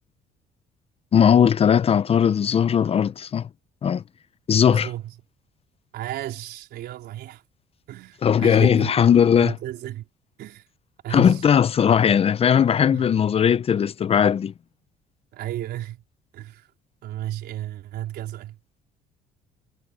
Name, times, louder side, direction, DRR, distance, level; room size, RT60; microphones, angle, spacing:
voice 1, 1.1-3.5 3.8-4.0 4.5-4.9 8.2-9.5 11.1-14.5, left 8 dB, 35° left, 0.6 m, -18 dB
voice 2, 4.7-5.1 5.9-7.4 7.9-9.0 9.4-10.1 10.4-10.6 11.0-11.4 12.9-13.1 15.3-16.0 16.3-16.7 17.0-18.6, right 13 dB, 75° right, 4.3 m, -33 dB
cardioid pair, 110°, 17 cm